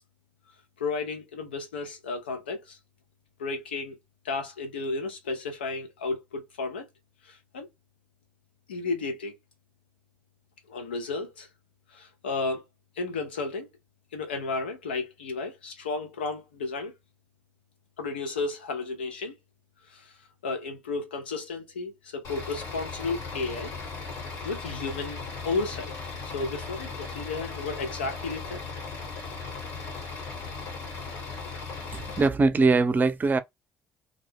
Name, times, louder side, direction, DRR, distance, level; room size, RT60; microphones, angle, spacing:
voice 1, 0.8-2.8 3.4-3.9 4.2-6.9 7.2-7.7 8.7-9.4 10.7-11.5 11.9-12.6 13.0-13.7 14.1-16.9 18.0-19.3 19.9-20.1 20.4-23.7 24.4-25.2 25.4-25.9 26.2-28.6, left 3 dB, 90° left, 0.7 m, -33 dB
Bus / Idling, 22.2-32.3, left 4 dB, 70° left, 1.4 m, -37 dB
voice 2, 31.9-33.4, right 3 dB, 35° right, 0.5 m, -22 dB
2.5 x 2.1 x 3.3 m
hypercardioid pair, 50°, 5 cm